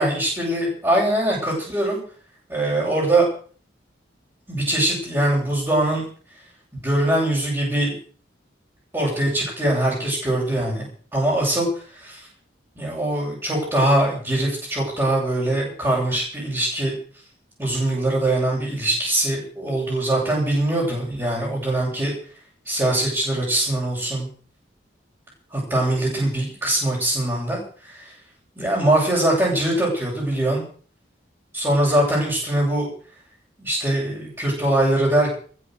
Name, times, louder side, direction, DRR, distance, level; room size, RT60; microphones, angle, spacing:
voice 1, 0.0-2.0 2.5-3.3 4.5-6.1 6.8-7.9 8.9-10.8 11.1-11.7 11.9-12.3 12.8-16.9 17.6-22.1 22.7-24.3 25.5-28.1 28.6-30.6 31.5-32.9 33.6-35.3, right 1 dB, 15° right, -9 dB, 7.8 m, -22 dB
15.0 x 11.0 x 7.9 m, 0.44 s
head